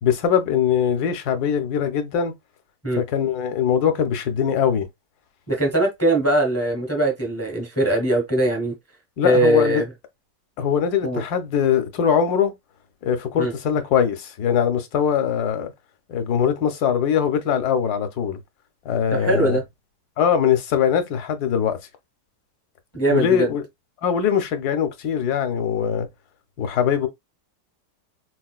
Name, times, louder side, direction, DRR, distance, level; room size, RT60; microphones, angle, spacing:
voice 1, 0.0-2.3 3.0-4.9 9.2-9.8 10.6-12.5 13.0-15.7 16.1-18.4 18.8-19.6 20.2-21.8 23.1-23.6 24.0-26.1 26.6-27.1, left 8 dB, 70° left, 1.2 m, -21 dB
voice 2, 5.5-8.7 9.2-9.8 11.0-11.2 13.4-13.5 19.1-19.6 22.9-23.5, right 1 dB, 15° left, 0.6 m, -21 dB
4.2 x 2.2 x 2.3 m
omnidirectional pair, 1.8 m